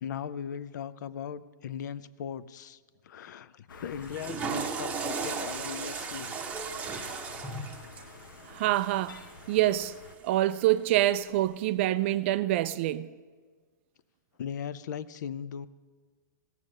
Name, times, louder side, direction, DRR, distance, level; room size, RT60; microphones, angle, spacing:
voice 1, 0.0-6.4 14.4-15.7, left 8 dB, 65° left, 0.5 m, -38 dB
sound 1, 3.7-10.2, left 5 dB, 80° left, 1.0 m, -49 dB
Water / Toilet flush, 4.0-10.2, right 5 dB, 15° right, 0.9 m, -37 dB
voice 2, 8.5-10.0 10.2-13.1, right 14 dB, 40° right, 0.3 m, -26 dB
17.0 x 7.2 x 6.5 m
hypercardioid pair, 150°, 11 cm